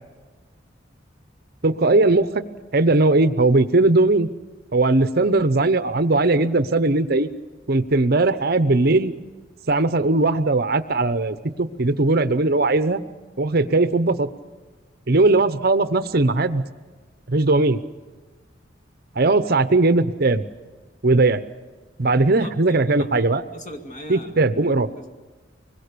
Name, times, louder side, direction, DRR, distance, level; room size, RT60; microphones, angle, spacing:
voice 1, 1.6-2.3 2.7-4.3 4.7-7.3 7.7-9.1 9.7-13.0 13.4-14.3 15.1-16.6 17.3-17.8 19.2-20.4 21.0-21.4 22.0-23.4 24.1-24.9, right 2 dB, 50° right, 12 dB, 0.9 m, -19 dB
voice 2, 22.1-23.3 23.5-24.5 24.9-25.1, equal, 40° left, 2 dB, 2.2 m, -39 dB
25.0 x 21.5 x 6.8 m, 1.3 s
head